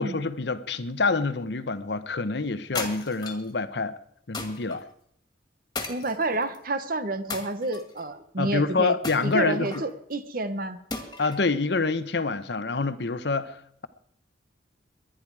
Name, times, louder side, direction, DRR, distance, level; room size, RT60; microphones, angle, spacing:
voice 1, 0.0-4.0 4.3-4.8 8.4-9.7 11.2-13.9, left 3 dB, 65° left, 0.9 m, -27 dB
sound 1, 2.7-3.5 4.3-4.8 5.7-6.6 7.3-8.0 9.0-9.9 10.9-11.5, left 3 dB, 20° left, 2.1 m, -35 dB
voice 2, 5.9-8.9 9.2-10.8, right 2 dB, 50° right, 1.1 m, -29 dB
22.0 x 10.0 x 4.8 m
head